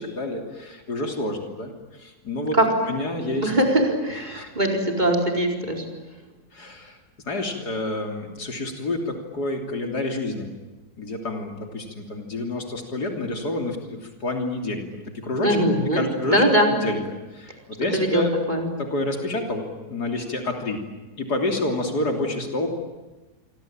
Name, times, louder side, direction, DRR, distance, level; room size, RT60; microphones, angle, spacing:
voice 1, 0.0-2.6 2.9-3.5 3.9-4.0 4.3-4.5 6.5-7.0 7.3-10.5 11.0-15.6 15.9-16.4 16.7-17.0 17.3-18.3 18.8-20.8 21.2-22.7, left 2 dB, 85° left, 3 dB, 3.7 m, -28 dB
voice 2, 3.3-5.8 15.4-17.0 17.9-18.7, right 1 dB, 25° right, 1 dB, 4.8 m, -22 dB
28.0 x 24.0 x 8.9 m, 1.2 s
omnidirectional pair, 1.7 m